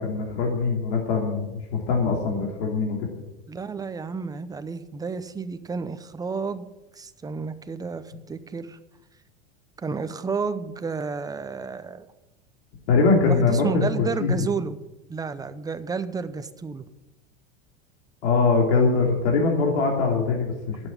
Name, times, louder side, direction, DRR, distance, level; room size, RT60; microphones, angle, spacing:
voice 1, 0.0-3.1 12.9-14.3 18.2-20.9, left 4 dB, 75° left, 0 dB, 3.2 m, -22 dB
voice 2, 3.5-6.6 6.9-8.8 9.8-12.1 13.2-14.8 15.1-16.8, right 5 dB, 10° right, 11 dB, 0.7 m, -31 dB
11.5 x 8.2 x 9.9 m, 1.0 s
supercardioid pair, 135°, 33 cm